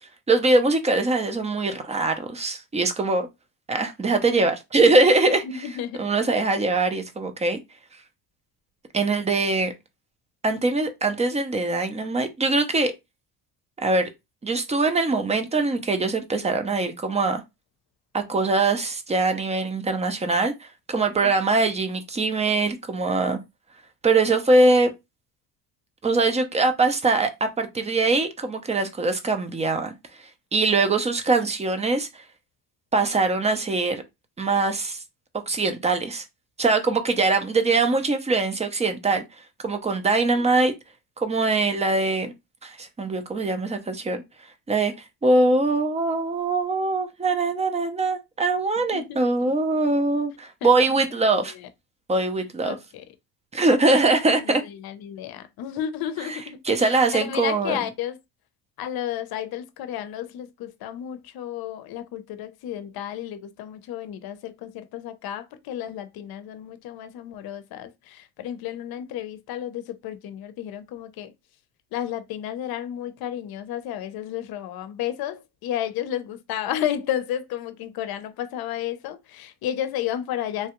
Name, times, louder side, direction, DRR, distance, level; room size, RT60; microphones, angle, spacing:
voice 1, 0.3-3.3 3.7-5.4 6.0-7.6 8.9-9.7 10.4-12.9 13.8-14.1 14.4-17.4 18.1-23.4 24.0-24.9 26.0-30.2 30.5-32.2 32.9-34.0 34.4-35.0 35.5-36.2 36.6-39.2 39.6-40.7 41.2-42.3 42.6-44.2 44.7-44.9 45.2-51.5 52.1-52.8 53.5-54.6 56.7-57.8, right 3 dB, 15° right, 0.5 m, -22 dB
voice 2, 5.4-6.0 21.2-21.3 40.4-40.5 48.8-49.5 50.6-51.7 52.6-53.1 54.2-58.2 58.8-71.3 71.9-80.7, left 10 dB, 65° left, 0.6 m, -32 dB
3.2 x 2.3 x 2.9 m
cardioid pair, 130°, 40 cm